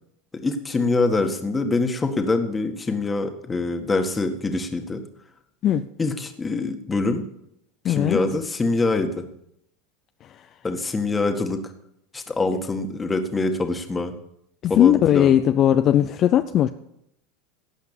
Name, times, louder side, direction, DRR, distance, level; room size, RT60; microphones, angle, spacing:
voice 1, 0.4-5.0 6.0-7.2 7.9-9.2 10.6-11.6 12.1-14.1 14.7-15.4, left 3 dB, 15° left, 6 dB, 1.7 m, -24 dB
voice 2, 7.8-8.2 14.6-16.7, left 11 dB, 45° left, 10 dB, 0.6 m, -18 dB
17.0 x 5.8 x 8.3 m, 0.78 s
supercardioid pair, 110°, 0 cm